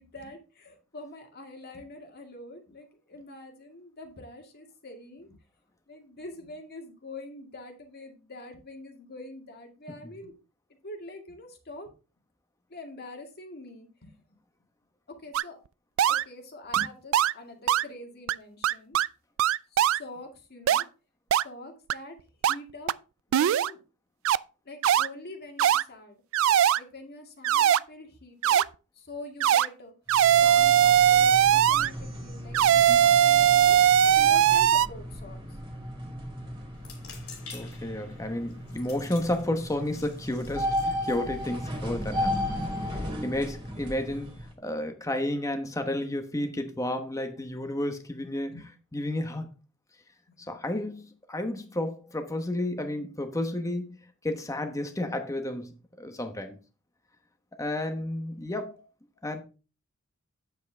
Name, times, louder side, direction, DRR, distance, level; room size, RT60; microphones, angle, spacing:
voice 1, 0.0-5.4 5.9-10.3 10.8-11.9 12.7-14.4 15.1-15.6 16.1-19.0 19.7-20.9 21.4-22.2 22.5-22.9 23.3-23.8 24.7-26.1 26.8-28.7 29.0-29.9 30.3-32.6 33.0-35.4 48.5-48.7 50.4-50.7, left 2 dB, 50° left, 2.1 m, -44 dB
sound 1, 15.3-15.4 16.0-16.2 16.7-16.9 17.1-17.3 17.7-17.8 18.3-18.4 18.6-19.1 19.4-20.0 20.7-20.8 21.3-21.4 21.9-22.0 22.4-22.5 22.9-23.0 23.3-23.7 24.2-24.4 24.8-25.1 25.6-25.8 26.3-26.8 27.4-27.8 28.4-28.6 29.4-29.7 30.1-31.9 32.5-34.9, right 10 dB, 65° right, 0.3 m, -20 dB
sound 2, 30.1-44.5, left 1 dB, 25° right, 2.4 m, -35 dB
sound 3, 36.7-42.1, left 5 dB, 80° left, 3.6 m, -50 dB
voice 2, 37.5-42.5 42.9-44.3 44.6-48.5 48.9-49.5 50.5-56.6 57.6-58.9 59.2-59.4, left 1 dB, 15° left, 1.0 m, -32 dB
9.2 x 7.5 x 3.4 m
head